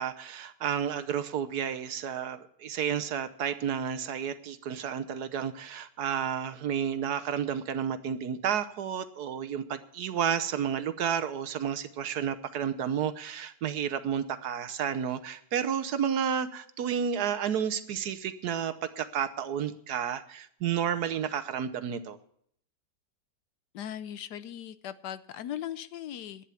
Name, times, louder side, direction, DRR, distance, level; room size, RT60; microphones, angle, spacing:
voice 1, 0.0-22.2, right 8 dB, 65° right, 12 dB, 1.2 m, -31 dB
voice 2, 23.7-26.5, left 10 dB, 70° left, 14 dB, 1.2 m, -39 dB
11.5 x 9.9 x 6.9 m, 0.66 s
omnidirectional pair, 1.9 m